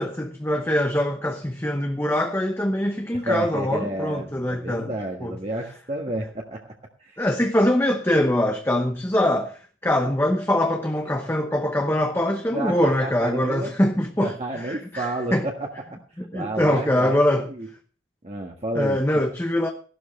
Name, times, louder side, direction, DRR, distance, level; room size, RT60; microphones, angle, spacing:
voice 1, 0.0-4.9 5.2-5.3 7.2-15.1 15.3-15.4 16.3-17.5 18.7-19.7, left 1 dB, 10° left, 0.9 m, -23 dB
voice 2, 3.1-6.6 7.0-7.2 12.5-13.7 14.2-16.0 16.3-17.7 18.2-19.0, right 1 dB, 35° right, 1.6 m, -31 dB
16.0 x 12.0 x 3.2 m
head